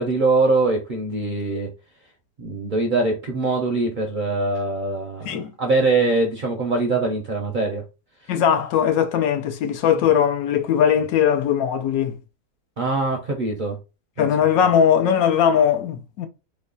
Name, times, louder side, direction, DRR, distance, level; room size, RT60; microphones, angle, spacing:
voice 1, 0.0-1.7 2.4-7.8 12.8-13.8 14.2-14.3, right 3 dB, 60° right, 0.5 m, -22 dB
voice 2, 8.3-12.1 14.2-16.3, left 8 dB, 75° left, 1.0 m, -19 dB
3.2 x 2.1 x 3.7 m
omnidirectional pair, 1.6 m